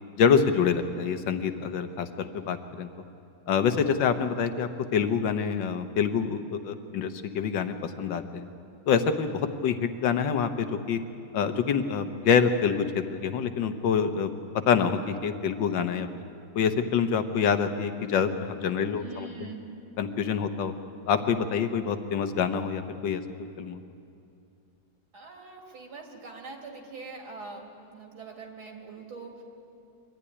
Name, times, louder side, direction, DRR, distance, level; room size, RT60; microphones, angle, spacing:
voice 1, 0.2-2.9 3.5-8.5 8.9-11.0 11.3-14.3 14.7-16.1 16.5-19.5 20.0-20.7 21.1-23.8, left 6 dB, 65° left, 8 dB, 1.7 m, -26 dB
voice 2, 18.8-19.6 25.1-29.4, right 3 dB, 70° right, 0 dB, 3.2 m, -43 dB
23.5 x 14.0 x 9.9 m, 2.6 s
omnidirectional pair, 2.3 m